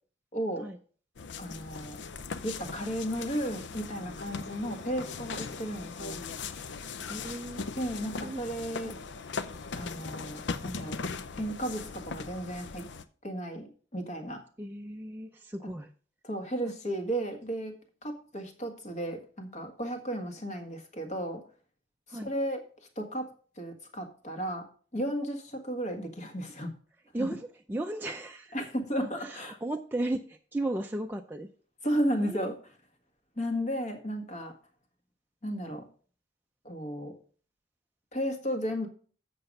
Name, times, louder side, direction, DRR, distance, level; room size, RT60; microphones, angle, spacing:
voice 1, 0.3-0.6 1.4-2.0 2.4-6.2 7.8-9.0 9.8-11.0 11.4-12.9 13.2-14.4 16.2-17.8 18.0-21.4 22.1-22.6 23.0-23.3 23.6-24.6 24.9-26.7 28.5-29.6 31.8-32.5 33.4-34.5 35.4-35.8 36.6-37.1 38.1-38.9, equal, 40° left, 5 dB, 1.6 m, -34 dB
sound 1, 1.2-13.0, left 4 dB, 65° left, 0.6 m, -39 dB
voice 2, 7.1-7.6 8.2-8.4 8.8-9.0 14.6-15.9 22.1-22.3 27.1-28.5 29.0-31.5 32.2-32.5, right 1 dB, 10° right, 2 dB, 0.5 m, -35 dB
7.9 x 6.7 x 5.3 m, 0.43 s
head